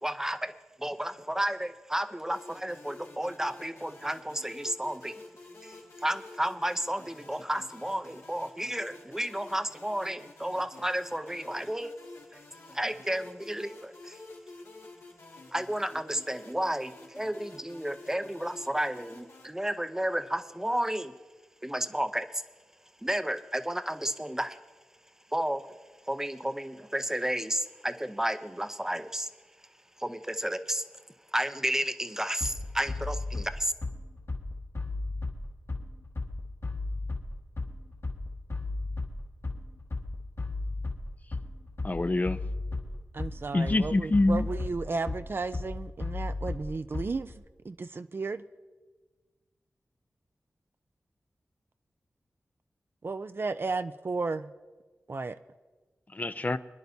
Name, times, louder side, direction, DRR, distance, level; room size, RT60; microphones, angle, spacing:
voice 1, 0.0-5.2 5.6-12.4 12.7-14.2 15.5-21.1 21.6-22.4 23.0-24.6 25.3-25.8 26.1-29.3 30.0-30.9 31.3-33.7, right 1 dB, 10° right, 10 dB, 0.6 m, -32 dB
sound 1, 2.3-19.5, left 2 dB, 85° left, 2.2 m, -50 dB
Bass drum, 32.4-47.4, left 2 dB, 65° left, 1.8 m, -35 dB
voice 2, 41.8-42.4 43.5-44.5 56.1-56.6, left 2 dB, 35° left, 11 dB, 0.5 m, -25 dB
voice 3, 43.1-47.3 47.6-48.4 53.0-54.5 55.1-55.4, right 3 dB, 50° right, 11 dB, 0.4 m, -34 dB
24.5 x 10.5 x 2.7 m, 1.3 s
wide cardioid pair, 70°, 5 cm